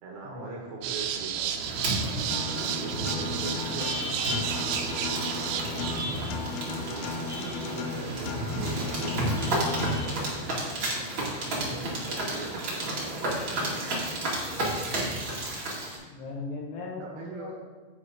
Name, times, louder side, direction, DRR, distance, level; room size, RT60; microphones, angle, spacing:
voice 1, 0.0-1.8 2.4-5.4 6.0-10.8 11.5-13.9 17.0-17.5, right 4 dB, 65° right, -2 dB, 2.7 m, -42 dB
sound 1, 0.8-6.1, right 9 dB, 90° right, 2.3 m, -32 dB
sound 2, 1.5-16.0, right 1 dB, 40° right, 1.9 m, -32 dB
Acoustic guitar, 2.3-10.3, left 6 dB, 90° left, 3.2 m, -37 dB
voice 2, 11.4-11.9 16.1-17.6, left 3 dB, 70° left, -1 dB, 3.1 m, -39 dB
8.7 x 7.6 x 5.0 m, 1.4 s
omnidirectional pair, 5.5 m